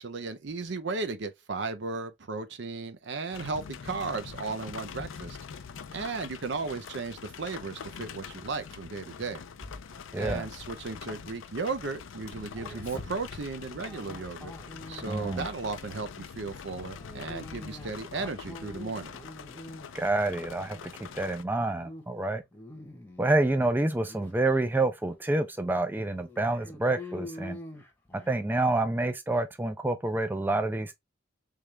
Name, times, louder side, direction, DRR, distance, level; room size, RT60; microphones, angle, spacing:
voice 1, 0.0-5.4 5.9-9.4 10.1-14.5 14.9-19.2, right 4 dB, 65° right, 0.6 m, -35 dB
sound 1, 3.3-21.4, left 6 dB, 85° left, 0.5 m, -44 dB
Dog, 9.6-11.9 12.2-15.5 15.9-16.2 17.0-20.1 20.5-21.2 21.6-22.0 22.4-23.6 24.1-24.3 24.9-25.0 25.4-25.5 26.1-28.4, left 1 dB, 10° left, 0.9 m, -45 dB
voice 2, 10.1-10.5 15.1-15.5 19.9-22.4 23.2-27.6 28.3-31.0, right 2 dB, 10° right, 0.3 m, -28 dB
3.6 x 3.2 x 3.2 m
head